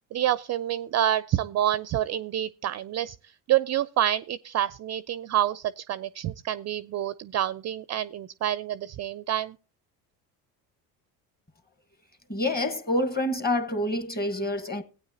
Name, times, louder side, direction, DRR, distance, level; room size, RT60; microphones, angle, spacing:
voice 1, 0.1-3.2 3.5-9.6, right 12 dB, 35° right, 0.4 m, -27 dB
voice 2, 12.3-14.8, left 1 dB, 20° left, 1.3 m, -27 dB
16.0 x 9.0 x 2.7 m
hypercardioid pair, 60°, 50 cm